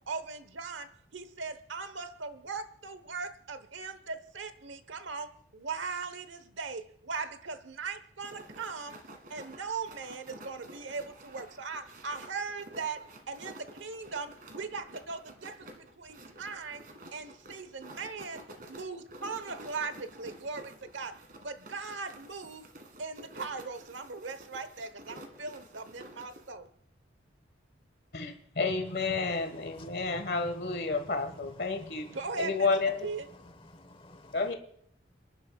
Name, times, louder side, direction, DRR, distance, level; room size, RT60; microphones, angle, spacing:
voice 1, 0.1-9.0 9.3-22.7 23.0-26.7 32.1-33.3, right 4 dB, 80° right, 12 dB, 1.1 m, -39 dB
sound 1, 8.2-26.5, right 1 dB, 50° right, 1.9 m, -50 dB
voice 2, 28.1-32.1 32.4-33.1 34.3-34.5, left 4 dB, 55° left, 5 dB, 1.5 m, -30 dB
voice 3, 29.3-30.3 30.9-32.2 33.7-34.4, left 1 dB, 30° left, 9 dB, 1.1 m, -53 dB
28.0 x 11.0 x 2.4 m, 0.68 s
head